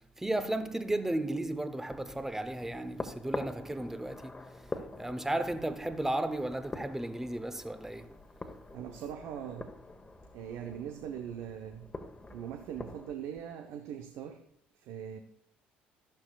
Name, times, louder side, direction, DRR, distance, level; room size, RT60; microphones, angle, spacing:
voice 1, 0.0-8.2, right 1 dB, 10° right, 0.9 m, -34 dB
sound 1, 1.9-13.1, left 2 dB, 20° left, 1.3 m, -45 dB
voice 2, 8.7-9.7 10.3-11.9 12.3-14.4 14.7-15.2, right 9 dB, 65° right, 1.0 m, -41 dB
13.0 x 11.5 x 2.4 m
hypercardioid pair, 55°, 5 cm